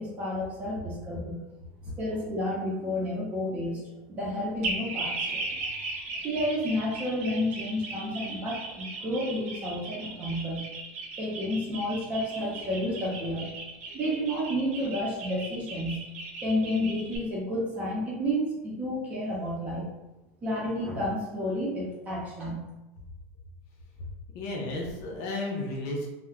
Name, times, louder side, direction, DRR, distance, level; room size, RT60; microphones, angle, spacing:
voice 1, 0.0-1.4 2.0-5.5 6.1-10.7 11.2-13.5 13.9-16.0 16.4-19.9 20.4-22.6, equal, 20° right, -5 dB, 0.6 m, -31 dB
sound 1, 4.6-17.2, right 3 dB, 85° right, 0.6 m, -37 dB
voice 2, 24.3-26.1, left 2 dB, 45° left, -2 dB, 0.6 m, -33 dB
2.2 x 2.1 x 3.5 m, 1.0 s
supercardioid pair, 175°, 7 cm